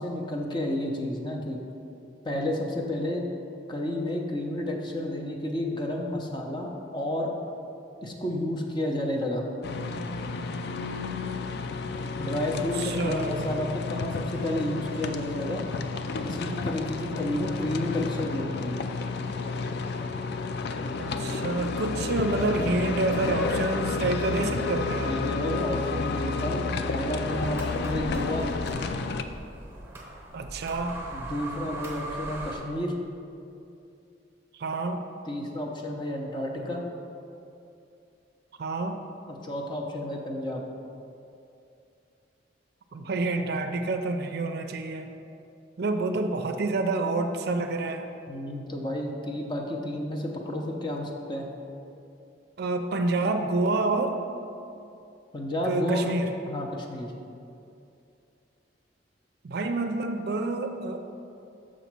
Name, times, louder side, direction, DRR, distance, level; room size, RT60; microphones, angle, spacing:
voice 1, 0.0-1.6 2.2-3.2 3.7-7.3 8.0-9.5 12.2-15.6 16.2-18.9 25.0-28.5 31.1-32.9 35.3-36.8 39.3-40.6 48.3-51.4 55.3-56.1 56.4-57.1, left 1 dB, 25° left, 0 dB, 0.6 m, -31 dB
sound 1, 9.6-29.2, left 4 dB, 55° left, 0.3 m, -31 dB
voice 2, 12.5-13.5 21.0-25.2 30.3-31.0 34.5-35.1 38.6-39.0 42.9-45.1 45.8-48.0 52.6-54.2 55.6-56.3 59.4-61.0, right 2 dB, 55° right, 6 dB, 0.4 m, -28 dB
sound 2, 27.3-32.6, right 1 dB, 15° right, 0.9 m, -39 dB
6.3 x 4.1 x 6.0 m, 2.7 s
head